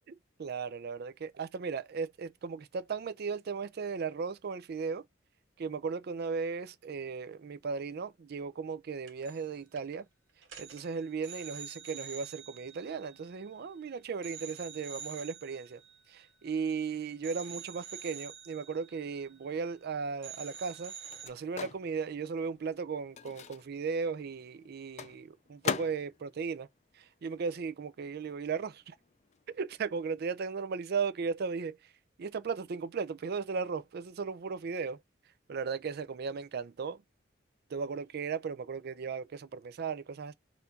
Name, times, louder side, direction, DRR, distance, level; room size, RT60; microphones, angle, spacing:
voice 1, 0.1-5.1 5.6-10.1 10.6-15.8 16.1-20.9 21.2-26.7 26.9-29.0 29.5-31.9 32.2-35.0 35.5-37.0 37.7-40.3, right 5 dB, 55° right, 0.4 m, -36 dB
sound 1, 9.1-9.5 9.8-10.0 10.4-13.8 14.2-16.8 17.2-19.9 20.2-21.3, right 7 dB, 75° right, 1.3 m, -48 dB
Microwave oven, 19.7-27.8 28.1-30.0, left 6 dB, 35° left, 0.4 m, -43 dB
4.4 x 2.7 x 3.9 m
head